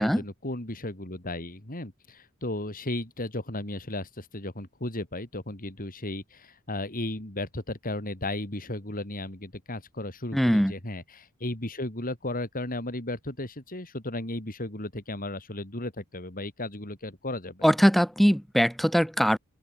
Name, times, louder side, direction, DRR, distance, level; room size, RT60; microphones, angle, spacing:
voice 1, 0.0-17.6, left 1 dB, 40° left, 4.0 m, -35 dB
voice 2, 10.3-10.7 17.6-19.4, equal, ahead, 0.9 m, -21 dB
head